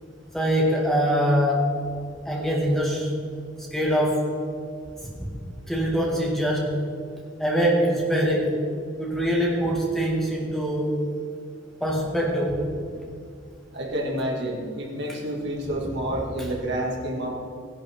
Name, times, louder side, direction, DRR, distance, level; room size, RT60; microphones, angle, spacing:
voice 1, 0.3-1.8 2.2-3.1 3.7-4.3 5.7-6.8 7.4-8.6 9.0-11.0 11.8-12.6 15.1-15.2, equal, ahead, -3 dB, 1.8 m, -23 dB
voice 2, 13.7-17.3, right 1 dB, 55° right, -1 dB, 2.4 m, -29 dB
17.0 x 11.0 x 3.7 m, 2.4 s
head